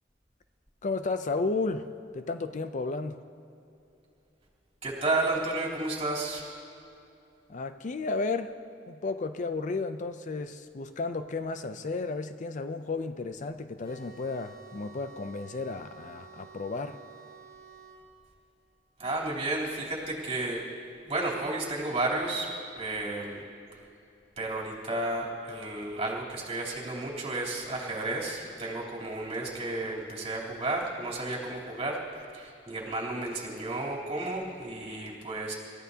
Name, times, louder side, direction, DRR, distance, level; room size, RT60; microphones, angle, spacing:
voice 1, 0.8-1.9 2.1-3.2 7.5-8.6 8.9-17.0, left 3 dB, 45° left, 10 dB, 0.5 m, -33 dB
voice 2, 4.8-6.5 19.0-20.6 21.1-23.4 24.4-32.0 32.3-35.5, right 2 dB, 35° right, -5 dB, 3.3 m, -32 dB
sound 1, 13.8-18.0, right 6 dB, 65° left, 3.6 m, -51 dB
28.5 x 14.0 x 2.8 m, 2.8 s
head